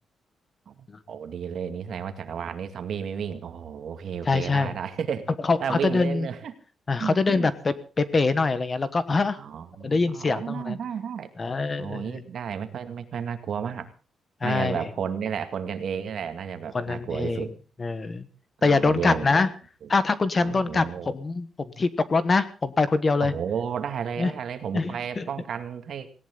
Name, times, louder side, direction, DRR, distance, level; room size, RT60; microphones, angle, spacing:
voice 1, 0.7-5.2 5.6-6.5 7.0-7.5 9.4-11.3 11.8-13.9 14.4-17.5 18.6-19.4 19.8-19.9 20.4-21.1 23.2-26.1, right 7 dB, 60° right, 8 dB, 2.3 m, -32 dB
voice 2, 4.3-4.7 5.4-6.3 6.9-9.4 9.8-10.8 11.4-12.2 14.4-14.8 16.7-17.5 17.8-18.3 18.6-19.5 19.9-23.3 24.2-24.3 24.7-25.3, left 3 dB, 25° left, 14 dB, 1.2 m, -24 dB
18.5 x 17.5 x 3.9 m, 0.37 s
wide cardioid pair, 155°, 0 cm